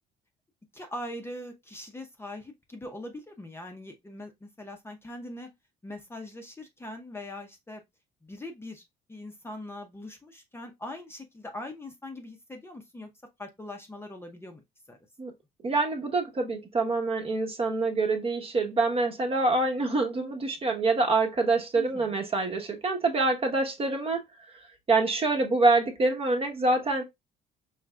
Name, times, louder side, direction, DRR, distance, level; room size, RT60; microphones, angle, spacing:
voice 1, 0.7-5.5 5.8-7.8 8.2-8.8 9.1-13.1 13.4-14.6 14.9-15.0 21.7-22.1, left 1 dB, 15° left, 0.7 m, -41 dB
voice 2, 15.6-24.2 24.9-27.0, right 3 dB, 35° right, 1.1 m, -26 dB
4.8 x 3.2 x 2.3 m
cardioid pair, 110°, 17 cm